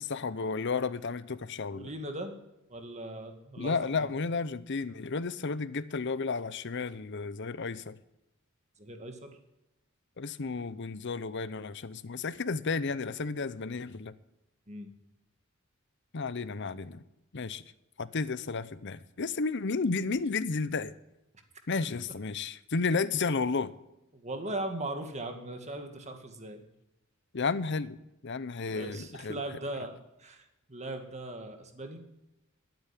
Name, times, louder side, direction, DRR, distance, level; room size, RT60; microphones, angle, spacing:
voice 1, 0.0-1.9 3.6-8.0 10.2-14.1 16.1-17.0 17.3-17.6 18.0-20.9 21.7-23.7 27.3-28.0 28.2-29.4, left 4 dB, 55° left, 15 dB, 0.7 m, -32 dB
voice 2, 1.7-2.4 2.7-4.1 8.8-9.3 14.7-14.9 24.1-26.6 28.7-32.0, right 1 dB, 30° right, 6 dB, 1.8 m, -39 dB
12.0 x 9.1 x 10.0 m, 0.92 s
head